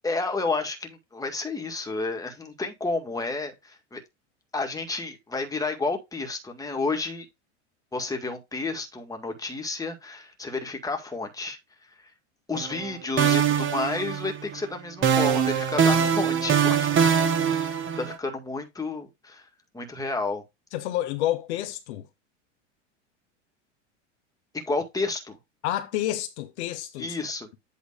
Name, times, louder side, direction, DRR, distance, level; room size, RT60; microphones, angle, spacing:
voice 1, 0.0-4.0 4.5-7.3 7.9-11.6 12.0-12.1 12.5-19.5 19.7-20.4 24.5-25.4 27.0-27.6, left 3 dB, 10° left, 2.0 m, -31 dB
sound 1, 12.5-12.9 13.2-14.6 15.0-18.2, right 8 dB, 35° right, 1.5 m, -23 dB
voice 2, 20.7-22.1 25.6-27.2, left 13 dB, 65° left, 1.2 m, -29 dB
8.6 x 3.2 x 4.9 m
hypercardioid pair, 100°, 36 cm